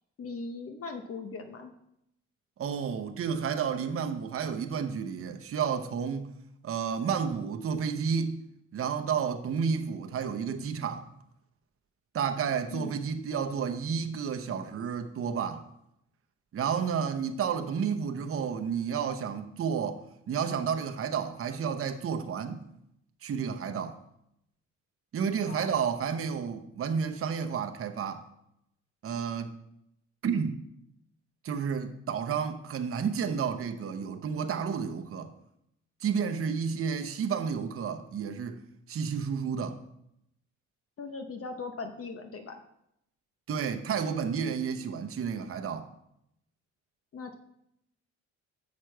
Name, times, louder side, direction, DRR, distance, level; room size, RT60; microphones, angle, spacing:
voice 1, 0.2-1.7 12.7-12.9 25.4-25.7 41.0-42.5 47.1-47.3, left 4 dB, 50° left, 0.9 m, -39 dB
voice 2, 2.6-6.3 6.6-8.4 8.7-11.1 12.1-15.7 16.5-22.6 23.2-24.0 25.1-28.2 29.0-29.5 30.2-30.6 31.4-35.3 36.0-38.6 38.9-39.8 43.5-45.9, right 6 dB, 45° right, 0.8 m, -31 dB
7.4 x 6.5 x 4.6 m
cardioid pair, 90°, 30 cm